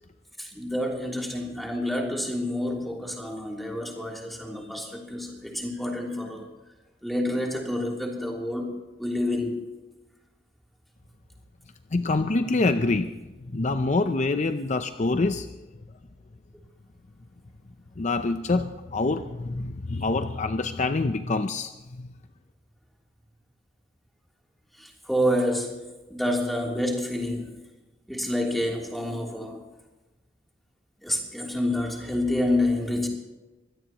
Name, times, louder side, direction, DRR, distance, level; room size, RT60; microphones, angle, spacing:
voice 1, 0.4-6.5 7.0-9.7 24.8-25.8 26.1-27.5 28.1-29.6 31.0-33.1, left 1 dB, ahead, -1 dB, 3.2 m, -28 dB
voice 2, 11.9-13.2 13.4-15.7 18.0-22.1, left 3 dB, 40° left, 8 dB, 0.6 m, -26 dB
24.5 x 17.0 x 3.0 m, 1.1 s
head